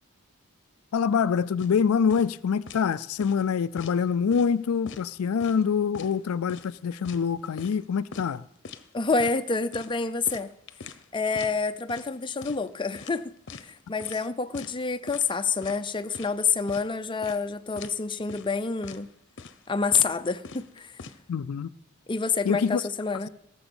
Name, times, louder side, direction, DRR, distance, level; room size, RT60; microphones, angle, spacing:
voice 1, 0.9-8.4 21.3-21.7 22.4-22.8, left 6 dB, 85° left, 0.4 m, -25 dB
sound 1, 1.6-1.8 2.1-2.3 2.7-2.9 3.2-4.0 4.3-4.5 4.9-5.6 5.9-6.2 6.5-7.8 8.1-8.3 8.6-8.9 9.2-9.4 9.7-11.0 11.3-11.5 11.9-12.1 12.4-12.7 12.9-13.7 14.0-14.2 14.5-14.8 15.1-15.3 15.6-16.3 16.7-16.9 17.2-17.5 17.8-18.0 18.3-18.5 18.8-19.0 19.4-19.7 19.9-20.1 20.4-21.2, left 4 dB, 60° left, 0.8 m, -43 dB
voice 2, 8.9-10.5 11.1-19.1 19.7-21.0 22.1-23.3, left 4 dB, 25° left, 0.6 m, -28 dB
17.0 x 7.0 x 7.0 m
head